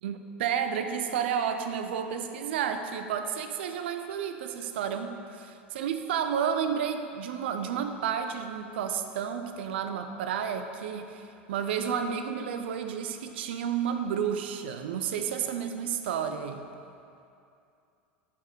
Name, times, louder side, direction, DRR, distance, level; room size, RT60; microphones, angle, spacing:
voice 1, 0.0-5.5 5.7-16.6, right 8 dB, 75° right, 7 dB, 0.4 m, -31 dB
6.1 x 4.3 x 3.7 m, 2.6 s
hypercardioid pair, 90°, 6 cm